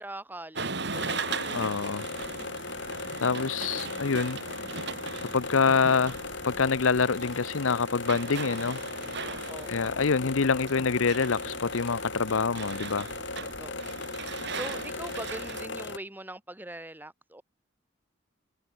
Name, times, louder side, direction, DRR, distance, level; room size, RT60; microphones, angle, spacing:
voice 1, 0.0-1.7 9.5-10.1 13.6-14.0 14.2-17.4, right 1 dB, 10° right, 1.4 m, -42 dB
sound 1, 0.6-15.6, right 4 dB, 55° right, 4.3 m, -39 dB
sound 2, 0.9-16.0, left 3 dB, 60° left, 4.8 m, -37 dB
voice 2, 1.5-2.1 3.2-4.4 5.3-6.2 6.4-8.8 9.7-13.1, left 5 dB, 75° left, 0.7 m, -26 dB
head